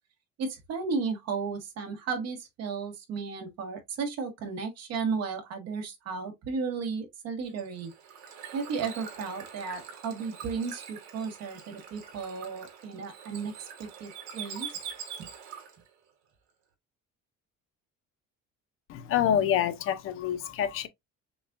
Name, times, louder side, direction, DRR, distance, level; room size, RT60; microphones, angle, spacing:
voice 1, 0.4-7.9 8.5-14.7 15.2-15.3, right 5 dB, 60° right, 1.5 m, -34 dB
Bird / Water, 7.4-15.9, right 7 dB, 75° right, 1.5 m, -44 dB
voice 2, 18.9-20.9, left 9 dB, 45° left, 0.6 m, -27 dB
6.8 x 2.4 x 2.5 m
cardioid pair, 175°, 29 cm